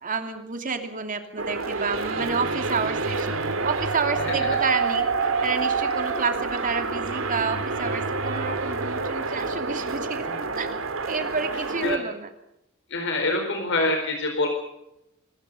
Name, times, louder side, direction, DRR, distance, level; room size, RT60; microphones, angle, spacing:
voice 1, 0.0-10.8 11.1-12.3, right 4 dB, 40° right, 6 dB, 2.8 m, -30 dB
sound 1, 1.4-12.0, right 4 dB, 80° right, 2.6 m, -27 dB
voice 2, 4.2-4.6 10.2-10.4 11.5-12.0 12.9-14.5, left 2 dB, 65° left, 4 dB, 4.5 m, -26 dB
25.0 x 20.0 x 5.4 m, 0.85 s
head